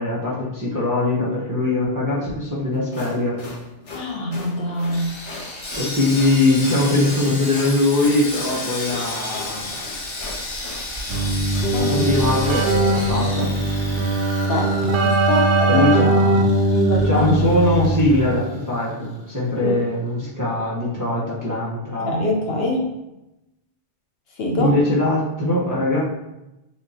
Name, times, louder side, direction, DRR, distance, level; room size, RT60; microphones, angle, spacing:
voice 1, 0.0-3.4 5.7-9.7 11.8-13.5 15.7-16.5 17.0-22.1 24.6-26.0, left 2 dB, 20° right, -7 dB, 0.7 m, -21 dB
sound 1, 2.7-11.7, left 3 dB, 85° left, 1.2 m, -39 dB
voice 2, 3.9-5.1 11.7-11.9 14.5-14.7 15.0-15.9 16.7-17.3 19.6-19.8 22.0-22.9 24.4-24.8, left 1 dB, 65° left, 0 dB, 0.8 m, -24 dB
Sawing, 4.9-19.2 19.4-19.6 20.1-20.2, left 2 dB, 35° left, 0.5 m, -33 dB
Keyboard (musical), 11.1-18.4, right 2 dB, 60° right, 0.6 m, -20 dB
5.8 x 2.2 x 2.7 m, 0.93 s
omnidirectional pair, 1.2 m